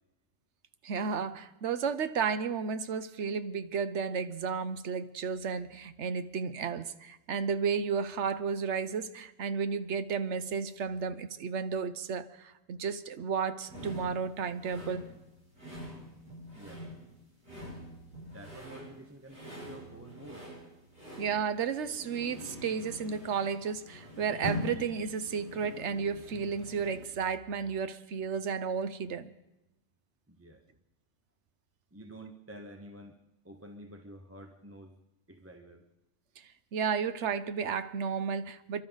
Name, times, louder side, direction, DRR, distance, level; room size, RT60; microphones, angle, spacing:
voice 1, 0.8-15.0 21.2-29.3 36.4-38.8, right 6 dB, 70° right, 1.0 m, -33 dB
sound 1, 13.7-27.1, left 1 dB, 50° right, 7.0 m, -44 dB
voice 2, 16.5-16.9 17.5-17.8 18.2-20.5 30.3-30.8 31.9-33.2 33.4-35.0 35.3-35.9, right 1 dB, 15° right, 0.8 m, -49 dB
28.0 x 12.0 x 4.0 m
omnidirectional pair, 1.3 m